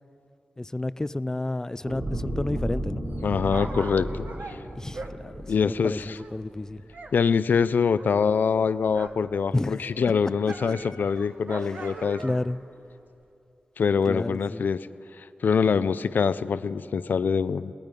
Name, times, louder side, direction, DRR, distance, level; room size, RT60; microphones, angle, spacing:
voice 1, 0.6-3.0 4.8-6.8 9.5-9.8 11.6-12.6 14.1-14.7, left 2 dB, 20° left, 16 dB, 0.4 m, -31 dB
sound 1, 1.8-6.4 6.8-7.0, right 1 dB, 45° right, 3.5 m, -34 dB
Dog, 3.1-7.2 7.4-9.3 9.6-12.6 13.2-13.3, right 3 dB, 65° right, 1.5 m, -42 dB
voice 2, 3.2-4.6 5.5-6.2 7.1-12.2 13.8-14.8 15.4-17.7, left 6 dB, 80° left, 14 dB, 0.5 m, -24 dB
29.0 x 19.5 x 5.3 m, 2.7 s
wide cardioid pair, 135°, 3 cm